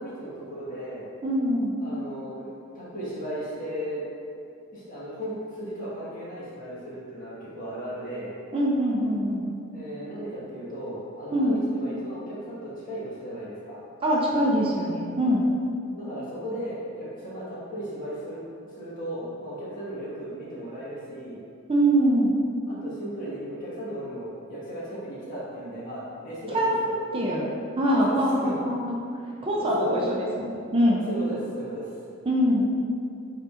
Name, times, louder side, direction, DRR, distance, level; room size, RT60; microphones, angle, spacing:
voice 1, 0.0-1.1 1.8-4.0 4.7-8.3 9.7-13.8 15.9-21.4 22.7-26.9 28.0-28.5 29.6-30.2 31.1-32.0, equal, 45° left, -9 dB, 1.5 m, -36 dB
voice 2, 1.2-1.8 8.5-9.5 11.3-11.6 14.0-15.5 21.7-22.3 26.5-27.5 27.8-29.0 29.4-29.8 30.1-31.0 32.3-32.7, equal, 25° right, -3 dB, 0.5 m, -23 dB
5.7 x 3.7 x 2.5 m, 2.4 s
head